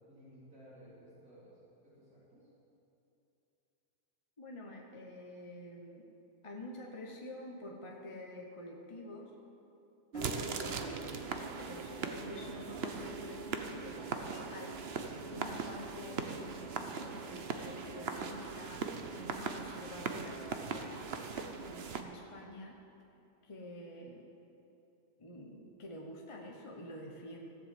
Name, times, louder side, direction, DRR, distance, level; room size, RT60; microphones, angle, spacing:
voice 1, 0.1-1.5 1.8-2.5, equal, 65° right, -10 dB, 4.4 m, -57 dB
voice 2, 4.4-6.1 6.4-9.3 10.1-14.8 15.3-22.8 23.4-24.3 25.2-27.4, left 1 dB, 25° left, -1 dB, 1.0 m, -48 dB
sound 1, 10.1-22.0, right 5 dB, 50° right, 0.9 m, -40 dB
15.0 x 7.7 x 7.6 m, 2.9 s
omnidirectional pair, 1.7 m